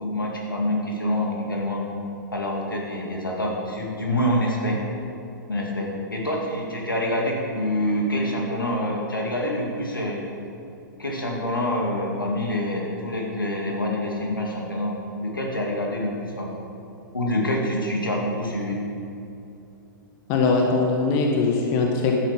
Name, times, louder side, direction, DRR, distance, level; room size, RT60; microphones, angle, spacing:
voice 1, 0.0-1.8 2.3-4.8 5.5-10.2 11.0-16.5 17.1-18.8, left 1 dB, 80° left, -1 dB, 2.5 m, -26 dB
voice 2, 20.3-22.1, left 4 dB, 35° left, 1 dB, 1.4 m, -21 dB
11.5 x 10.0 x 5.3 m, 2.7 s
figure-of-eight pair, 110°, 11 cm